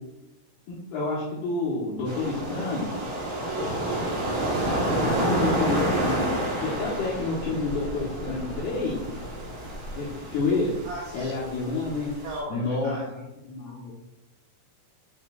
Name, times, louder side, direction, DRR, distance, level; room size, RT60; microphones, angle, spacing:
voice 1, 0.9-3.0 4.2-6.3 6.6-9.0 10.0-10.8 11.1-12.1 12.5-13.2 13.5-13.9, left 3 dB, 80° left, -7 dB, 2.3 m, -29 dB
sound 1, 2.1-12.4, right 1 dB, 60° right, 2.7 m, -30 dB
voice 2, 3.5-3.8 10.8-11.3 12.2-13.1, right 1 dB, 85° right, -1 dB, 2.5 m, -36 dB
9.3 x 4.4 x 2.3 m, 0.95 s
omnidirectional pair, 5.8 m